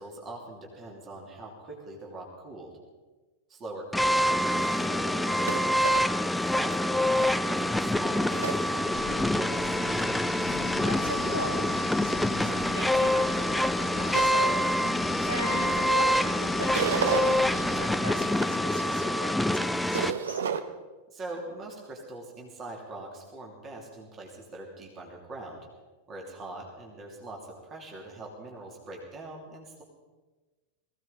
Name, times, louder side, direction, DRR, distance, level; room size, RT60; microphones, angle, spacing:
voice 1, 0.0-2.7 3.5-5.9 6.3-10.0 21.1-25.6 26.1-29.8, right 2 dB, 25° right, 0 dB, 2.9 m, -42 dB
sound 1, 3.9-20.1, left 1 dB, 5° left, 0.5 m, -26 dB
sound 2, 4.2-9.2 9.6-10.5 11.0-11.5 12.0-15.8 16.1-17.4 17.9-20.6, right 7 dB, 65° right, 0.9 m, -34 dB
Wind, 8.8-18.0, left 7 dB, 40° left, 1.3 m, -42 dB
voice 2, 10.8-14.9 15.2-20.4, left 1 dB, 80° right, -2 dB, 5.2 m, -38 dB
20.5 x 15.5 x 4.1 m, 1.2 s
figure-of-eight pair, 90°, 0 cm